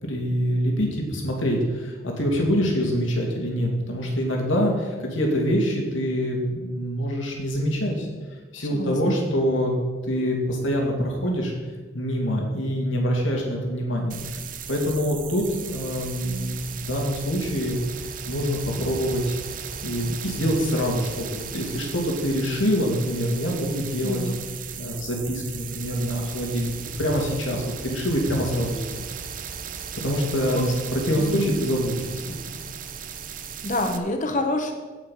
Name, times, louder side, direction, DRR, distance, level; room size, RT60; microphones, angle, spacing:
voice 1, 0.0-8.1 8.5-9.7 10.0-11.5 11.9-14.4 14.7-19.4 19.8-24.2 24.7-29.1 29.9-30.6 30.9-32.6, equal, 85° left, 0 dB, 2.7 m, -25 dB
voice 2, 8.6-9.1 24.0-24.4 30.5-30.7 31.1-31.5 33.6-34.7, left 1 dB, 40° left, 4 dB, 1.4 m, -27 dB
sound 1, 14.1-34.0, right 7 dB, 45° right, 0.7 m, -36 dB
16.0 x 5.7 x 5.7 m, 1.4 s
head